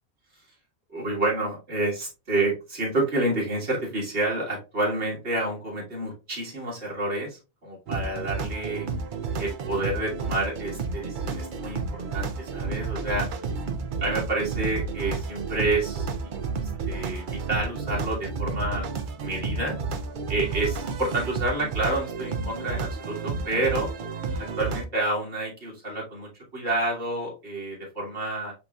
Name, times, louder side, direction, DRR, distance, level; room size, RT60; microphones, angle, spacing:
voice 1, 0.9-8.9 9.4-13.3 14.0-18.9 19.2-19.8 20.3-23.9 24.4-28.5, right 2 dB, 85° right, -4 dB, 2.1 m, -29 dB
sound 1, 7.9-24.9, right 4 dB, 55° right, 0.7 m, -31 dB
8.1 x 2.7 x 2.3 m, 0.29 s
omnidirectional pair, 1.1 m